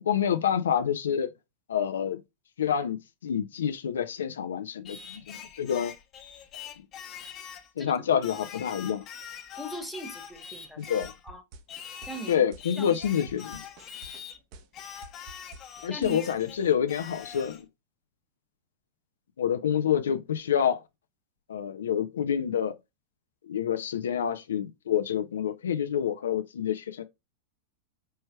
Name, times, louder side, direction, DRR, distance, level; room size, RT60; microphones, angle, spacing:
voice 1, 0.0-1.3 1.7-2.2 2.6-5.9 7.8-9.0 10.8-11.1 12.3-13.6 15.8-17.7 19.4-20.8 21.5-22.7 23.4-27.0, left 8 dB, 90° left, 0.4 m, -28 dB
Singing, 4.9-7.7 8.2-11.2 11.7-14.4 14.7-17.6, left 8 dB, 35° left, 0.8 m, -43 dB
voice 2, 7.8-8.4 8.7-8.9 9.6-10.9 11.2-11.4 12.1-12.4 12.8-13.0 13.9-14.1 15.9-16.2, right 1 dB, ahead, 1.0 m, -40 dB
sound 1, 10.8-16.2, right 3 dB, 50° right, 0.7 m, -48 dB
4.4 x 3.3 x 2.2 m
hypercardioid pair, 120°, 0 cm